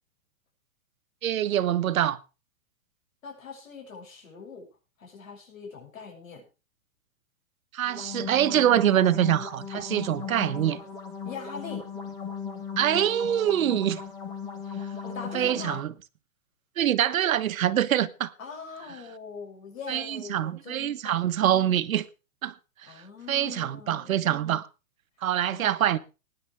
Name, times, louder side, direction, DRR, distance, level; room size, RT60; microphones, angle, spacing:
voice 1, 1.2-2.2 7.7-10.8 12.8-14.0 15.3-15.9 16.8-18.3 19.9-22.0 22.4-22.5 23.3-24.7 25.2-26.0, right 11 dB, 85° right, 1.2 m, -24 dB
voice 2, 3.2-4.7 5.0-6.5 11.2-11.9 15.0-15.8 18.4-21.3 22.9-24.1 25.5-25.7, left 5 dB, 75° left, 7.0 m, -42 dB
sound 1, 7.8-15.8, left 6 dB, 10° left, 0.7 m, -37 dB
20.0 x 10.0 x 3.5 m
hypercardioid pair, 175°, 40 cm